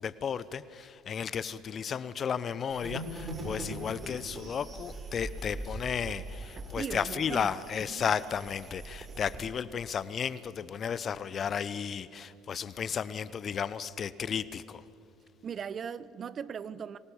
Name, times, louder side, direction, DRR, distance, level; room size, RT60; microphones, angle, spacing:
voice 1, 0.0-14.8, left 7 dB, 45° left, 0.8 m, -34 dB
sound 1, 2.7-9.4, right 1 dB, 25° right, 6.4 m, -41 dB
voice 2, 6.5-7.6 7.9-8.1 15.4-17.0, right 7 dB, 45° right, 0.7 m, -39 dB
24.5 x 19.0 x 7.1 m
hypercardioid pair, 60°, 0 cm